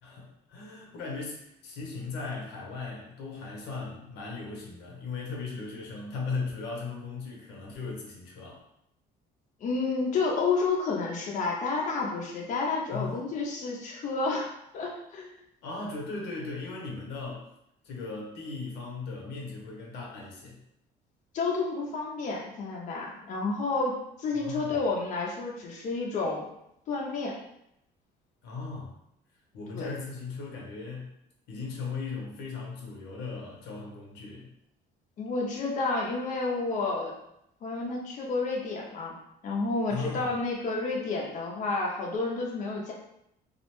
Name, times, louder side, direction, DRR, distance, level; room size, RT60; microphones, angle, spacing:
voice 1, 0.0-8.6 12.9-13.3 15.6-17.5 17.8-20.6 24.3-24.8 28.4-28.9 29.5-31.1 31.5-34.5 39.9-40.3, left 4 dB, 85° left, -1 dB, 0.7 m, -37 dB
voice 2, 9.6-14.5 14.7-15.4 21.3-26.5 26.9-27.3 29.7-29.9 35.2-37.1 37.6-39.1 39.4-42.9, left 3 dB, 45° left, -2 dB, 0.5 m, -30 dB
2.4 x 2.1 x 2.9 m, 0.78 s
cardioid pair, 110°, 17 cm